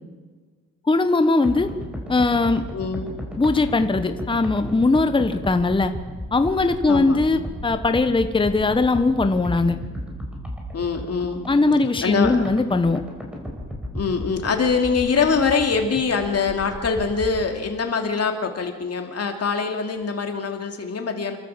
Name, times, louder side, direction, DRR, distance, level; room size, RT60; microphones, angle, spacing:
voice 1, 0.9-1.7 2.1-2.6 3.4-5.9 6.3-9.8 11.5-13.0, left 3 dB, 15° left, 8 dB, 1.1 m, -20 dB
sound 1, 1.4-17.5, equal, 5° right, 4.4 m, -35 dB
voice 2, 2.7-3.1 6.9-7.6 10.7-11.4 12.0-12.4 13.9-21.4, left 5 dB, 45° left, 4 dB, 2.8 m, -24 dB
26.5 x 13.5 x 7.4 m, 1.4 s
cardioid pair, 110°, 33 cm